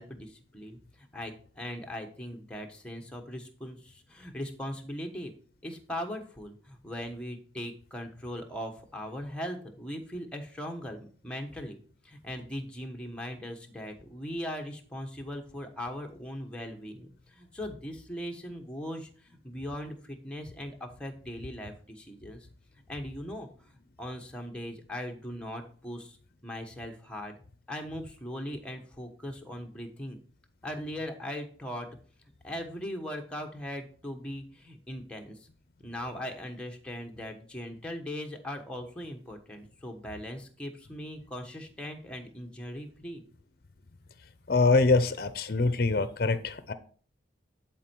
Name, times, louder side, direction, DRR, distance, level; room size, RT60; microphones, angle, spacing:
voice 1, 0.0-5.3 5.6-11.8 12.0-22.5 22.9-23.7 24.0-26.2 26.4-27.4 27.7-30.2 30.6-31.9 32.4-35.5 35.8-43.2, equal, 5° left, 2 dB, 1.2 m, -39 dB
voice 2, 44.5-46.7, left 3 dB, 50° left, 12 dB, 0.7 m, -24 dB
11.0 x 4.5 x 4.6 m, 0.43 s
head